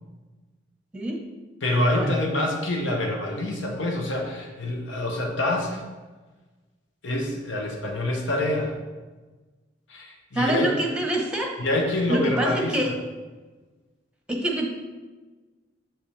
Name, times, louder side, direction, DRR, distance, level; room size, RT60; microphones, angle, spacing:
voice 1, 1.6-5.8 7.0-8.7 9.9-10.7 11.6-12.9, left 1 dB, 75° left, 1 dB, 0.9 m, -26 dB
voice 2, 10.3-11.5 12.1-12.9 14.3-14.8, right 1 dB, 5° right, 1 dB, 1.0 m, -25 dB
7.4 x 5.6 x 3.3 m, 1.3 s
head